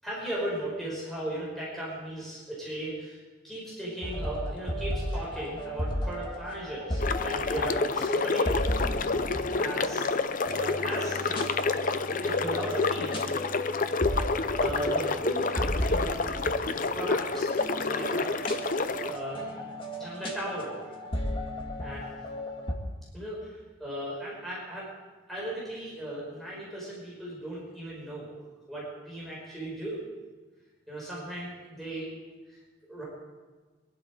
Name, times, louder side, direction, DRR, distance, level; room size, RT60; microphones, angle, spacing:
voice 1, 0.0-3.2 3.4-8.8 9.3-11.5 12.2-13.3 14.6-16.1 16.6-17.5 17.9-18.3 19.0-19.4 20.0-20.9 21.8-22.1 23.1-24.9 25.3-28.3 28.7-30.0 30.9-32.1 32.9-33.1, right 1 dB, ahead, -6 dB, 5.1 m, -36 dB
sound 1, 4.0-22.7, equal, 25° left, 2.0 m, -35 dB
sound 2, 7.0-19.2, left 4 dB, 40° left, 0.6 m, -29 dB
23.0 x 11.5 x 5.0 m, 1.3 s
head